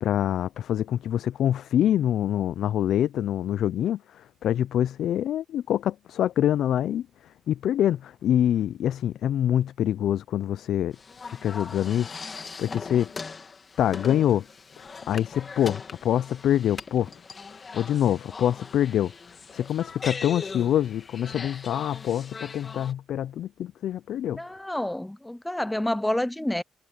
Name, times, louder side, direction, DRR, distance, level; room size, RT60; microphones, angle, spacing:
voice 1, 0.0-7.1 7.5-11.0 11.2-13.1 13.8-14.5 14.8-17.1 17.7-19.1 19.5-24.4, left 11 dB, 70° left, 0.4 m, -25 dB
sound 1, 10.9-22.9, left 4 dB, 35° left, 2.1 m, -40 dB
voice 2, 24.3-26.6, left 1 dB, 5° left, 0.5 m, -28 dB
cardioid pair, 90°, 0 cm